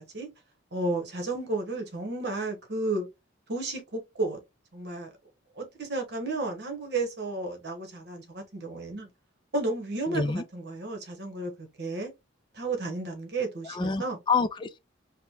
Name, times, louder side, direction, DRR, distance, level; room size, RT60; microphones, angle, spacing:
voice 1, 0.7-3.1 3.5-4.4 4.7-5.1 5.5-9.1 9.5-12.1 12.5-14.2, right 2 dB, 55° right, 1.2 m, -32 dB
voice 2, 10.1-10.4 13.7-14.8, left 4 dB, 25° left, 0.3 m, -28 dB
5.1 x 2.2 x 3.0 m
head